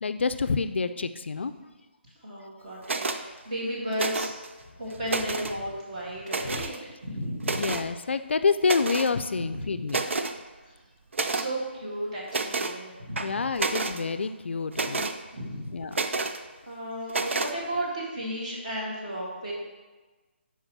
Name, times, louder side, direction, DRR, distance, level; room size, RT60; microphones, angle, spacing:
voice 1, 0.0-1.5 7.6-10.0 13.2-15.1 15.7-15.9, left 4 dB, 70° left, 11 dB, 0.4 m, -27 dB
voice 2, 2.2-4.3 4.8-6.7 7.0-7.7 9.4-9.9 10.6-10.8 11.3-13.4 15.3-15.7 16.7-19.5, equal, 35° right, -5 dB, 2.0 m, -34 dB
sound 1, 2.8-3.2 3.9-4.5 4.9-5.6 6.3-6.8 7.4-7.9 8.6-9.1 9.5-9.6 9.9-10.4 11.1-11.5 12.3-12.8 13.2-14.0 14.7-15.2 15.9-16.4 17.1-17.5, right 3 dB, 80° right, 0.5 m, -29 dB
5.4 x 4.8 x 5.9 m, 1.3 s
hypercardioid pair, 175°, 6 cm